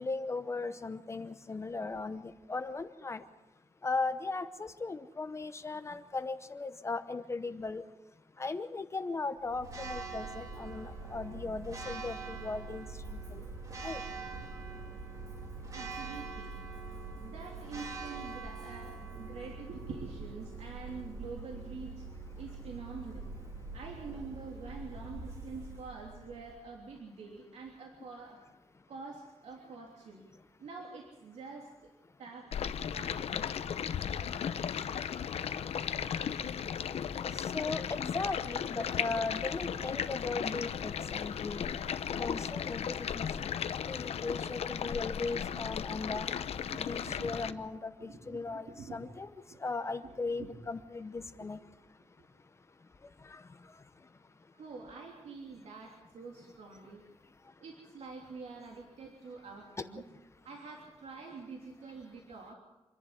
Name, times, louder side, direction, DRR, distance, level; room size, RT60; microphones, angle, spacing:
voice 1, 0.0-3.2 3.8-7.8 8.4-13.4 13.8-14.0 37.3-41.7 42.2-43.5 43.9-46.3 46.8-49.3 49.6-51.6 53.3-53.4, left 3 dB, 25° left, 0.8 m, -37 dB
Church bell, 9.4-26.6, right 3 dB, 30° right, 2.5 m, -44 dB
voice 2, 15.7-16.6 17.2-22.1 22.4-23.2 23.7-28.4 28.9-30.2 30.6-31.9 32.2-32.5 32.9-33.4 40.6-40.7 41.7-41.8 46.6-47.6 48.0-49.1 49.5-49.6 50.0-50.1 50.4-50.5 51.4-51.5 54.5-57.0 57.6-60.0 60.4-62.6, right 4 dB, 85° right, 3.2 m, -46 dB
Stream, 32.5-47.5, left 8 dB, 70° left, 0.8 m, -36 dB
27.0 x 11.0 x 9.8 m
wide cardioid pair, 175°, 11 cm